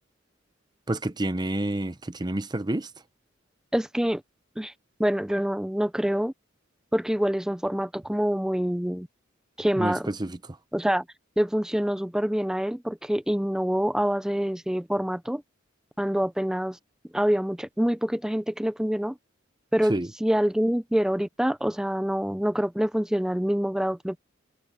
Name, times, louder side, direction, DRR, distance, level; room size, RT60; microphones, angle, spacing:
voice 1, 0.9-2.9 9.8-9.9 10.2-10.3 19.9-20.1, right 1 dB, 20° right, 0.8 m, -28 dB
voice 2, 3.7-4.2 4.6-4.7 5.0-6.3 6.9-9.1 9.6-10.1 10.7-11.0 11.4-15.4 16.0-16.8 17.1-19.1 19.7-24.2, equal, 5° right, 0.4 m, -26 dB
head